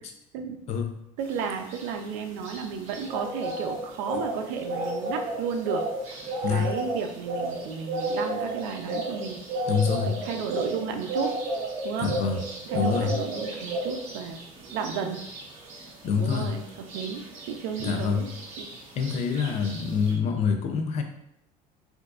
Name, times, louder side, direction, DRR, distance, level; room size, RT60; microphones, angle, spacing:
voice 1, 1.2-5.8 6.5-9.4 10.0-11.3 11.8-12.1 12.7-14.4 14.7-15.2 16.2-18.3 18.6-18.8, right 6 dB, 90° right, 5 dB, 0.5 m, -33 dB
sound 1, 1.3-20.1, right 1 dB, 50° right, 1.1 m, -33 dB
voice 2, 9.7-10.2 12.0-12.4 12.7-13.1 16.0-16.5 17.8-18.3 18.9-21.0, left 6 dB, 45° left, 5 dB, 0.5 m, -26 dB
4.5 x 2.6 x 2.4 m, 0.77 s
cardioid pair, 145°, 16 cm